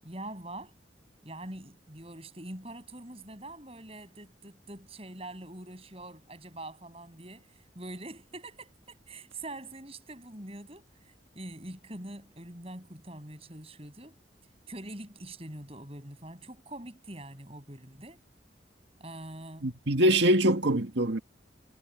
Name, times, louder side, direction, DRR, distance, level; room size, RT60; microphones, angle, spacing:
voice 1, 0.0-0.7 1.2-10.9 11.3-14.2 14.7-18.2 19.0-19.7, right 1 dB, 35° right, 7.9 m, -44 dB
voice 2, 19.6-21.2, right 1 dB, 80° right, 1.9 m, -24 dB
head